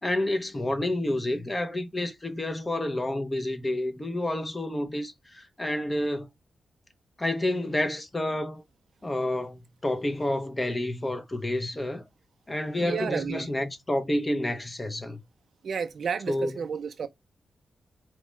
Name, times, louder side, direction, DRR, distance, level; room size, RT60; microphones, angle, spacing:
voice 1, 0.0-6.3 7.2-8.6 9.0-12.0 12.5-15.2 16.3-16.6, left 1 dB, 20° left, 0.6 m, -29 dB
voice 2, 12.8-13.5 15.6-17.1, right 6 dB, 60° right, 0.4 m, -31 dB
4.4 x 2.2 x 3.0 m
wide cardioid pair, 140°, 0 cm